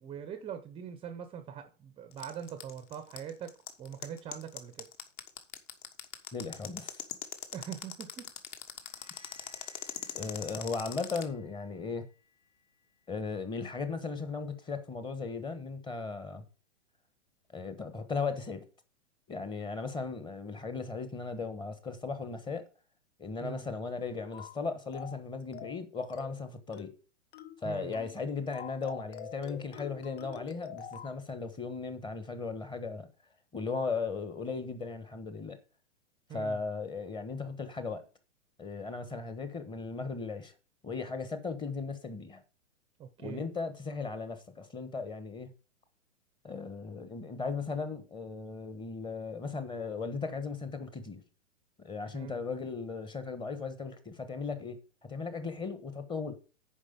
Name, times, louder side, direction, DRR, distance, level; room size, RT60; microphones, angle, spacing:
voice 1, 0.0-3.5 3.8-4.9 7.5-8.3 10.2-10.3 23.4-23.7 27.6-28.0 36.3-36.6 43.0-43.4 52.1-52.4, right 8 dB, 15° right, 0.7 m, -42 dB
sound 1, 2.1-11.2, left 10 dB, 40° left, 1.5 m, -40 dB
voice 2, 6.3-7.0 10.1-12.0 13.1-16.4 17.5-18.6 19.3-22.6 23.2-26.9 27.6-33.1 33.5-35.6 36.3-38.0 38.6-40.5 40.8-42.4 43.2-45.5 46.4-51.2 51.8-54.8 55.1-56.4, left 4 dB, 10° left, 1.1 m, -37 dB
sound 2, 8.6-14.2, left 4 dB, 80° left, 2.6 m, -63 dB
sound 3, 24.3-24.6 24.9-25.2 25.5-25.8 26.1-26.4 26.7-27.0 27.3-27.6 27.9-28.2 28.5-31.2, left 8 dB, 60° left, 1.2 m, -46 dB
10.0 x 5.0 x 5.2 m
hypercardioid pair, 125°, 37 cm